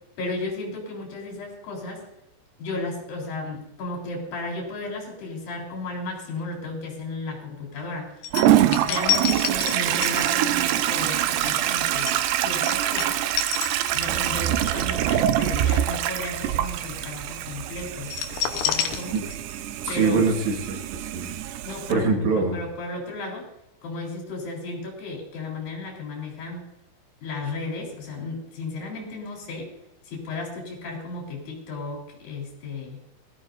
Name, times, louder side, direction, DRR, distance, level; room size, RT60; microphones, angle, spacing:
voice 1, 0.2-2.0 2.6-8.3 8.8-13.3 13.9-18.1 18.6-19.2 19.9-20.3 21.6-23.5 23.8-26.6 27.2-29.7 30.0-33.0, left 2 dB, 50° left, -2 dB, 5.2 m, -34 dB
sound 1, 8.2-14.3 14.7-14.9 18.0-19.6 19.9-20.0, left 9 dB, 75° left, 2.4 m, -29 dB
Toilet flush, 8.3-21.9, right 12 dB, 90° right, 2.4 m, -25 dB
voice 2, 19.8-21.3 21.9-22.6, right 4 dB, 70° right, 2 dB, 3.8 m, -23 dB
20.5 x 14.5 x 2.6 m, 0.87 s
omnidirectional pair, 5.5 m